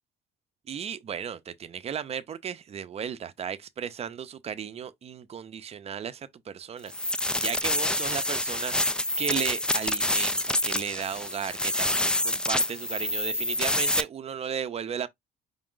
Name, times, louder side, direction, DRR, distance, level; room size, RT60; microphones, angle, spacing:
voice 1, 0.7-15.1, right 8 dB, 40° right, 0.6 m, -35 dB
sound 1, 6.9-14.0, left 1 dB, 5° left, 0.3 m, -27 dB
5.3 x 2.4 x 3.8 m
cardioid pair, 110°, 17 cm